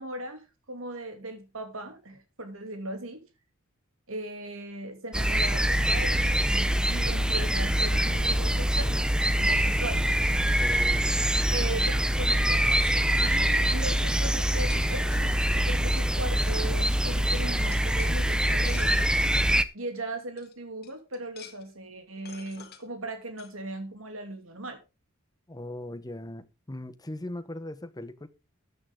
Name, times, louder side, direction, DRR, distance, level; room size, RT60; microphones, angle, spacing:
voice 1, 0.0-3.2 4.1-9.1 9.4-10.1 11.5-12.9 13.2-19.1 19.7-24.8, right 2 dB, 70° right, 2.7 m, -38 dB
sound 1, 5.1-19.6, equal, 5° right, 0.6 m, -24 dB
voice 2, 10.5-11.1 25.5-28.3, left 1 dB, 20° left, 0.9 m, -39 dB
sound 2, 12.6-13.3 14.3-14.4 14.7-15.7 16.5-16.6 16.9-17.1 17.7-19.3 20.0-20.1 20.4-20.5 20.8-21.7 22.2-22.8 23.4-23.5, left 8 dB, 50° left, 2.0 m, -48 dB
13.5 x 9.2 x 3.7 m
head